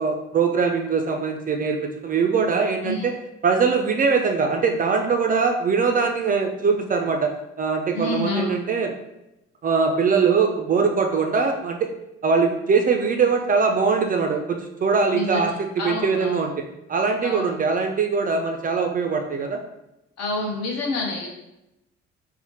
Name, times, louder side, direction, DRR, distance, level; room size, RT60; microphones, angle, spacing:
voice 1, 0.0-3.1 3.4-7.3 7.6-8.9 9.6-11.9 12.2-16.5 16.9-19.6, right 5 dB, 30° right, 3 dB, 0.4 m, -22 dB
voice 2, 7.9-8.5 15.1-16.4 17.2-17.5 20.2-21.3, left 2 dB, 55° left, -1 dB, 0.9 m, -28 dB
4.1 x 2.0 x 2.8 m, 0.90 s
figure-of-eight pair, 45°, 31 cm